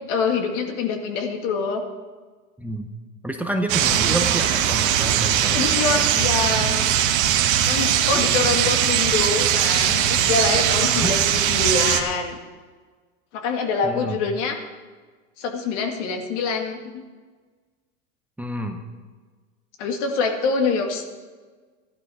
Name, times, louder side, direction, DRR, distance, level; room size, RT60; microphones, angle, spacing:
voice 1, 0.1-1.8 5.5-6.9 7.7-12.4 13.3-14.6 15.4-17.1 19.8-21.1, left 4 dB, 65° left, 4 dB, 2.1 m, -25 dB
voice 2, 2.6-2.9 3.2-6.0 7.6-7.9 10.8-11.2 13.8-14.2 18.4-18.8, right 1 dB, 5° right, 5 dB, 0.8 m, -29 dB
sound 1, 3.7-12.0, right 10 dB, 50° right, 1.6 m, -20 dB
14.0 x 11.5 x 4.8 m, 1.4 s
hypercardioid pair, 120°, 39 cm